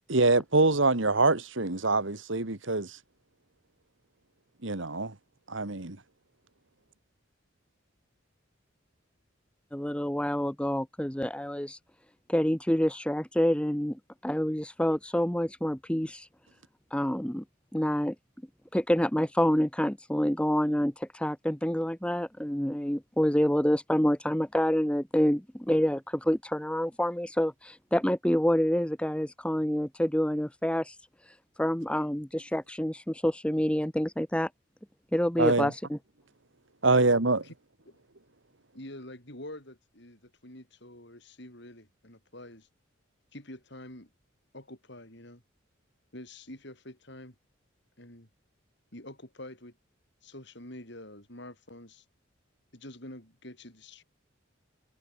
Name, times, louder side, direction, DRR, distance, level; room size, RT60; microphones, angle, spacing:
voice 1, 0.1-3.0 4.6-5.1 5.5-6.0 35.4-35.7 36.8-37.4, right 3 dB, 65° right, 2.0 m, -25 dB
voice 2, 9.7-11.8 12.3-16.3 16.9-17.4 17.7-18.1 18.7-31.0 31.3-34.5 35.1-36.0, equal, 5° left, 0.9 m, -27 dB
voice 3, 38.7-42.7 43.3-44.1 44.5-45.4 46.1-47.3 48.0-48.3 48.9-49.7 50.2-52.0 52.7-54.0, left 1 dB, 55° left, 7.1 m, -46 dB
head